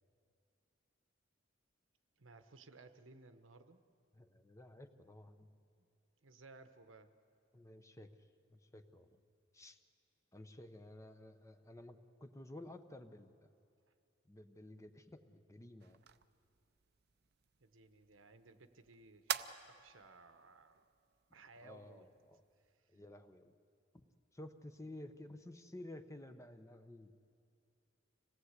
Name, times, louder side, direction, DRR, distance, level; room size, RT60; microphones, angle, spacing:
voice 1, 2.2-3.8 6.2-7.1 13.9-14.0 17.6-20.9 21.3-22.1 22.6-23.0, right 3 dB, 85° right, 9 dB, 1.1 m, -60 dB
voice 2, 4.1-5.5 7.5-8.1 8.5-9.2 9.5-9.8 10.3-13.3 14.3-16.0 21.6-22.4 22.9-23.5 23.9-24.0 24.3-27.2, left 1 dB, 15° left, 8 dB, 0.9 m, -53 dB
sound 1, 15.8-22.7, right 9 dB, 55° right, 0.6 m, -48 dB
26.5 x 18.0 x 8.2 m, 2.4 s
head